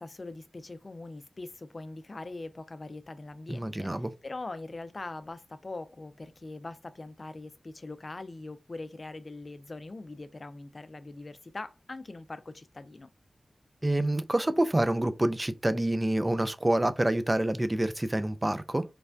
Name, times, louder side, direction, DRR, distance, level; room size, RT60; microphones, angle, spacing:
voice 1, 0.0-13.1, left 2 dB, 50° left, 0.4 m, -42 dB
voice 2, 3.5-4.1 13.8-18.8, right 1 dB, 25° right, 0.4 m, -27 dB
3.2 x 2.1 x 2.5 m
cardioid pair, 45°, 0 cm